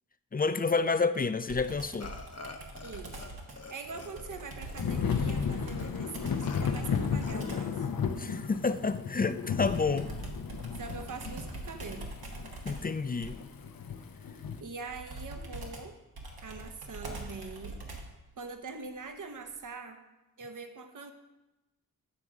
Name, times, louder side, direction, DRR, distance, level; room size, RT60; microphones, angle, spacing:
voice 1, 0.3-2.1 8.2-10.1 12.7-13.4, left 4 dB, 25° left, 12 dB, 0.4 m, -29 dB
Computer keyboard, 1.5-7.8 9.6-18.2, right 2 dB, 80° right, 1.4 m, -44 dB
Burping eructation, 2.0-3.3 3.6-5.4 5.8-5.9 6.4-6.6 7.2-7.8, left 3 dB, 45° left, 0.9 m, -47 dB
voice 2, 2.8-3.4 3.7-7.9 10.7-12.1 14.6-16.0 16.4-17.8 18.4-20.0 20.4-21.1, right 4 dB, 55° right, 7 dB, 0.9 m, -43 dB
Thunder / Rain, 4.8-14.6, left 6 dB, 65° left, 0.7 m, -34 dB
9.6 x 3.7 x 6.0 m, 1.0 s
cardioid pair, 50°, 36 cm